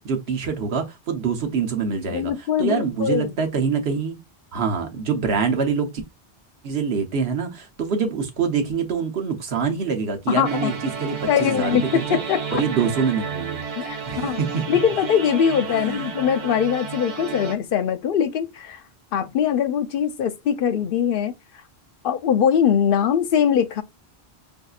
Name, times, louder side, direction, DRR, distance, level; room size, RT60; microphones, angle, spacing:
voice 1, 0.0-2.3 2.6-4.2 4.5-5.9 6.6-12.2 12.5-13.6 14.1-14.6 15.8-16.1, right 5 dB, 80° right, 1.2 m, -25 dB
voice 2, 2.1-3.3 10.3-10.7 11.3-12.6 13.8-14.4 14.7-18.8 19.1-21.3 22.0-23.8, left 8 dB, 65° left, 0.8 m, -22 dB
sound 1, 10.4-17.5, right 6 dB, 50° right, 0.8 m, -32 dB
5.8 x 2.7 x 2.4 m
omnidirectional pair, 1.0 m